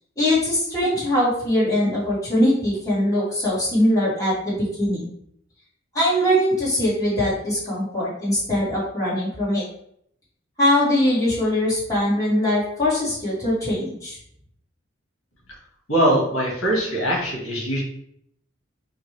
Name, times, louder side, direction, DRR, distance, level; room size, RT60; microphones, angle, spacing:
voice 1, 0.2-5.1 5.9-9.6 10.6-14.2, left 1 dB, 15° left, -8 dB, 1.6 m, -21 dB
voice 2, 15.9-17.8, right 1 dB, 75° left, -3 dB, 1.5 m, -21 dB
5.1 x 2.6 x 3.2 m, 0.70 s
head